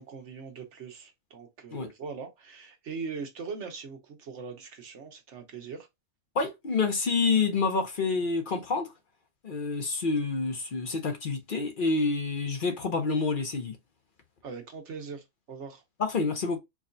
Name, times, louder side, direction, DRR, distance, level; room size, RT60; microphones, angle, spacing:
voice 1, 0.0-5.9 14.4-15.8, right 5 dB, 70° right, 1.2 m, -41 dB
voice 2, 6.3-8.9 9.4-13.8 16.0-16.6, left 4 dB, 50° left, 0.8 m, -28 dB
4.8 x 2.3 x 2.6 m
omnidirectional pair, 1.3 m